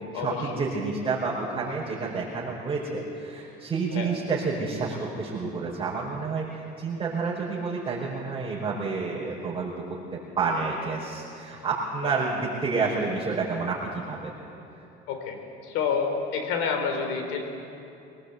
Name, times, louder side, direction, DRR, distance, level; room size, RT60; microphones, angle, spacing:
voice 1, 0.1-6.5 6.8-9.7 10.4-13.8 14.1-14.2, right 4 dB, 25° right, -7 dB, 5.1 m, -29 dB
voice 2, 15.1-17.4, left 6 dB, 85° left, 5 dB, 3.9 m, -29 dB
23.5 x 19.5 x 8.2 m, 2.7 s
cardioid pair, 115°, 21 cm